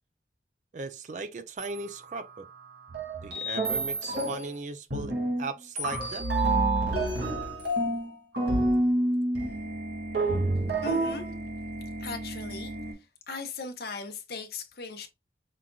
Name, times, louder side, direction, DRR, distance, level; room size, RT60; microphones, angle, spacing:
voice 1, 0.7-2.5 3.2-5.1 5.4-6.2, right 3 dB, 40° right, 0.4 m, -37 dB
sound 1, 1.6-1.8 2.3-2.4 2.9-4.5 4.9-5.5 5.8-12.9, right 2 dB, 75° right, 2.0 m, -28 dB
voice 2, 10.8-11.3 12.0-12.7 13.3-15.1, left 3 dB, 60° left, 0.8 m, -37 dB
5.6 x 2.5 x 2.3 m
head